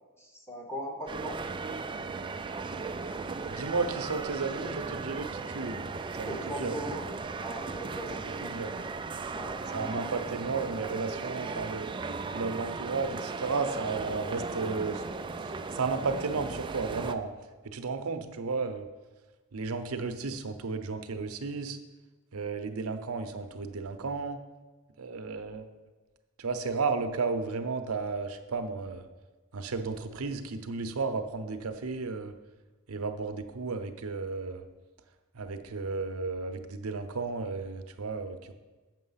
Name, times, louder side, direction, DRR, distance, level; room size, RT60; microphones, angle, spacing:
voice 1, 0.2-1.4 6.2-7.0 7.4-8.2 8.6-8.9 9.3-9.6 9.8-10.0, equal, 10° left, 1 dB, 1.2 m, -39 dB
sound 1, 1.1-17.2, right 4 dB, 20° right, 0.3 m, -37 dB
voice 2, 3.5-5.8 6.2-6.8 8.4-8.7 9.7-11.9 12.3-15.0 15.4-17.3 17.6-18.9 19.5-21.8 22.3-24.4 25.0-25.7 26.4-29.1 29.5-32.3 32.9-34.6 35.3-38.5, right 4 dB, 80° right, 8 dB, 0.7 m, -33 dB
7.5 x 6.2 x 5.6 m, 1.2 s
head